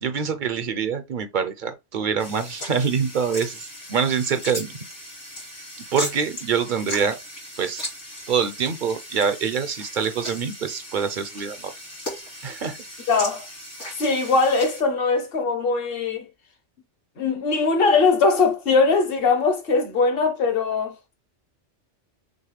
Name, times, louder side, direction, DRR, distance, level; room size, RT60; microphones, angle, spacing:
voice 1, 0.0-4.7 5.9-7.2 7.6-7.9 8.3-11.7 12.4-12.8, right 6 dB, 50° right, 0.7 m, -25 dB
sound 1, 2.2-14.8, left 1 dB, 75° left, 2.7 m, -37 dB
voice 2, 13.1-13.4 14.0-16.3 17.2-20.9, left 4 dB, 55° left, 1.0 m, -21 dB
6.3 x 2.1 x 3.2 m
omnidirectional pair, 1.2 m